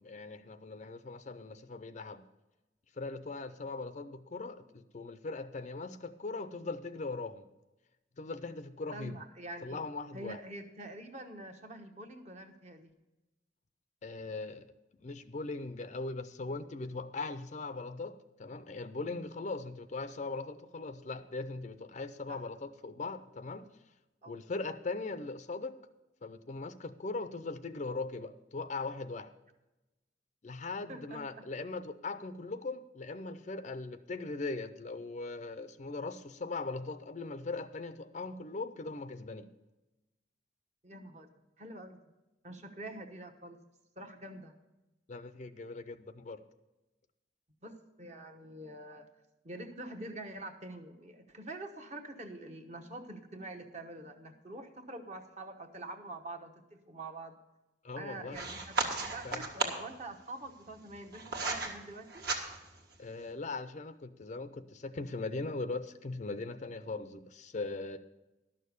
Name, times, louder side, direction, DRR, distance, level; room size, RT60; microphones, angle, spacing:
voice 1, 0.0-2.2 3.0-7.5 8.2-9.2 9.6-10.4 14.0-14.7 14.9-23.7 24.3-25.8 26.2-29.3 30.4-39.5 45.1-46.4 57.8-58.4 59.2-59.4 63.0-68.0, left 3 dB, 40° left, 12 dB, 0.5 m, -40 dB
voice 2, 8.9-9.8 10.1-12.9 22.3-22.4 24.2-24.4 30.9-31.4 40.8-42.0 42.4-43.6 44.0-44.5 47.6-49.1 49.4-57.4 58.0-62.3, right 2 dB, 35° right, 5 dB, 1.1 m, -46 dB
sound 1, 58.3-59.9 60.7-61.7 62.1-62.8, right 3 dB, 55° right, 1.6 m, -35 dB
12.0 x 6.5 x 6.7 m, 1.0 s
head